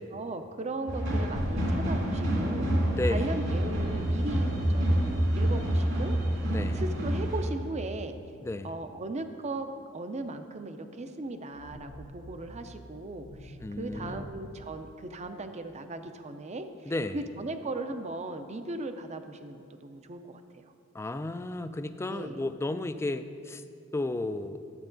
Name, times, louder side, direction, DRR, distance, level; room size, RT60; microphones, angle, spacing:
voice 1, 0.0-6.2 6.7-8.2 8.6-20.7 22.1-22.5, right 2 dB, 35° right, 8 dB, 0.6 m, -38 dB
sound 1, 0.9-7.4, right 1 dB, 70° right, 2.5 m, -27 dB
voice 2, 2.9-3.3 6.5-6.8 8.4-8.7 13.6-14.3 16.9-17.2 20.9-23.6 23.9-24.6, left 2 dB, 15° left, 10 dB, 0.3 m, -33 dB
sound 2, 11.5-15.6, equal, 80° left, 1.2 m, -47 dB
12.0 x 8.1 x 3.9 m, 2.4 s
head